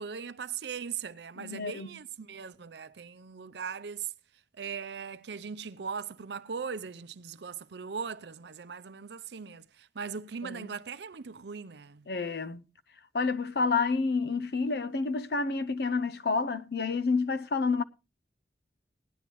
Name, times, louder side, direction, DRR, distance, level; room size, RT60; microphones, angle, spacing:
voice 1, 0.0-4.1 4.6-12.1, right 6 dB, 70° right, 0.6 m, -39 dB
voice 2, 1.4-1.9 10.4-10.7 12.1-12.6 13.1-17.8, left 4 dB, 60° left, 0.6 m, -29 dB
18.5 x 10.0 x 3.0 m
head